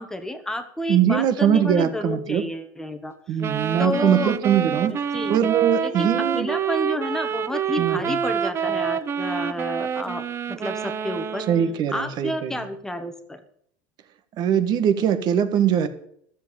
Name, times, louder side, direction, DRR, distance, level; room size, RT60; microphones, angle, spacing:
voice 1, 0.0-3.1 3.5-4.4 4.6-5.4 5.8-11.5 11.9-13.4, left 1 dB, 5° left, 8 dB, 1.4 m, -30 dB
voice 2, 0.9-2.4 3.3-4.9 5.3-6.5 7.8-8.2 11.5-12.7 14.4-15.9, right 9 dB, 40° right, 9 dB, 1.5 m, -21 dB
sound 1, 3.4-11.8, right 8 dB, 25° right, 0.7 m, -27 dB
14.0 x 7.6 x 8.5 m, 0.67 s
supercardioid pair, 155°, 11 cm